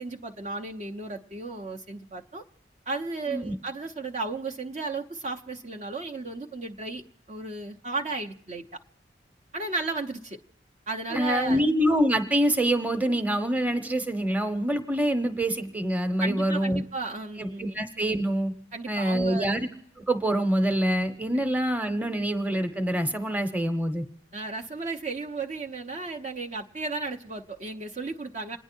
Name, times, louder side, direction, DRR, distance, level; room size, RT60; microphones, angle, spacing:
voice 1, 0.0-2.4 2.9-7.0 7.3-8.6 9.5-10.4 10.9-11.6 16.2-17.8 18.7-19.5 24.3-28.6, right 3 dB, 40° right, 1 dB, 0.9 m, -34 dB
voice 2, 11.1-16.8 17.4-18.5 18.9-19.7 20.0-24.1, right 1 dB, 10° right, 8 dB, 1.1 m, -25 dB
28.0 x 10.0 x 4.5 m, 0.76 s
head